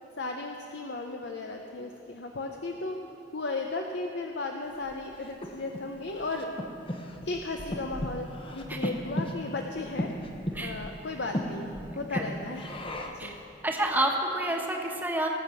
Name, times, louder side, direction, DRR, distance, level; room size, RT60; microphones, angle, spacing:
voice 1, 0.2-3.0 3.3-6.5 7.2-8.3 8.5-10.1 10.6-11.7 12.0-12.7 13.1-13.4, left 3 dB, 65° left, 3 dB, 0.7 m, -35 dB
Breathing, 4.8-13.3, equal, 30° left, 0.9 m, -36 dB
voice 2, 11.8-12.4 13.2-13.4 13.6-15.3, right 1 dB, 10° right, 1 dB, 1.2 m, -29 dB
19.5 x 7.1 x 6.1 m, 3.0 s
head